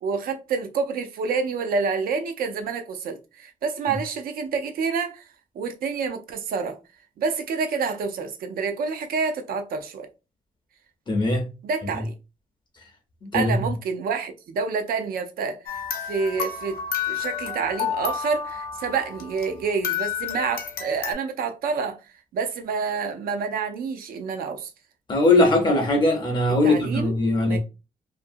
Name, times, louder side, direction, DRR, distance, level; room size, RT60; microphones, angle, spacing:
voice 1, 0.0-5.3 5.6-6.8 7.2-10.1 11.6-12.1 13.3-15.8 16.1-16.8 17.1-22.0 22.3-24.7 26.6-27.1 27.5-27.6, right 5 dB, 80° right, 0.5 m, -28 dB
voice 2, 11.1-11.5 13.2-13.5 25.1-27.6, left 2 dB, 30° left, 0.6 m, -20 dB
sound 1, 15.7-19.5 19.8-21.1, left 8 dB, 80° left, 0.6 m, -30 dB
2.7 x 2.5 x 2.5 m
wide cardioid pair, 180°, 15 cm